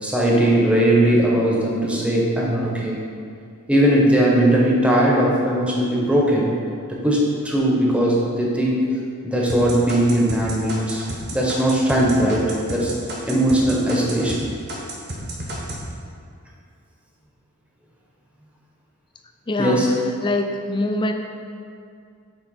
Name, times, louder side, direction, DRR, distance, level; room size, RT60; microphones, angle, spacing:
voice 1, 0.0-3.0 3.7-6.5 6.9-8.8 9.2-11.0 11.3-12.9 13.2-14.4 19.6-19.9, right 1 dB, 5° right, -4 dB, 1.0 m, -19 dB
sound 1, 9.5-14.4 14.7-15.8, right 1 dB, 50° right, 1.2 m, -32 dB
voice 2, 19.5-19.8 20.2-21.1, left 2 dB, 20° left, 5 dB, 0.4 m, -23 dB
8.7 x 3.2 x 4.7 m, 2.3 s
head